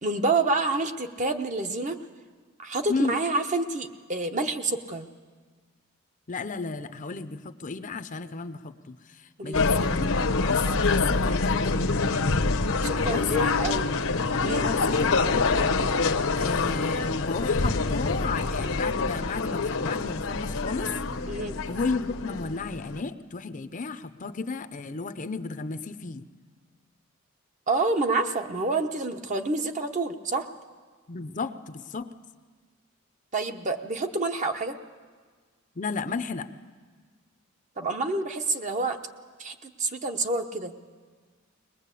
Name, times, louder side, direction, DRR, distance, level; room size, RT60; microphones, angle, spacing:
voice 1, 0.0-2.0 2.6-5.1 9.4-9.6 12.8-13.9 14.4-14.7 21.3-21.6 27.7-30.5 33.3-34.7 37.8-39.0 39.4-40.7, right 3 dB, 35° right, 6 dB, 1.0 m, -28 dB
voice 2, 6.3-9.0 9.4-11.9 13.0-13.3 14.6-15.8 16.3-20.9 21.7-26.3 31.1-32.1 35.8-36.5, left 4 dB, 35° left, 11 dB, 0.6 m, -33 dB
sound 1, 9.5-23.0, left 3 dB, 70° left, 0.9 m, -26 dB
21.0 x 20.5 x 8.3 m, 1.5 s
head